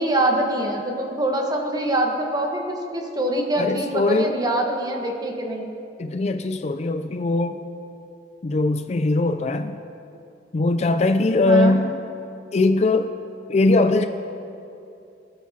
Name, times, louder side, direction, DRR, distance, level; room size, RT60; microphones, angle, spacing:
voice 1, 0.0-5.7 11.4-11.8, right 1 dB, 20° right, 1 dB, 1.2 m, -24 dB
voice 2, 3.6-4.3 6.0-7.6 8.4-9.8 10.5-12.0 12.5-13.1 13.5-14.1, left 2 dB, 40° left, 8 dB, 0.4 m, -20 dB
21.5 x 9.4 x 2.8 m, 2.7 s
head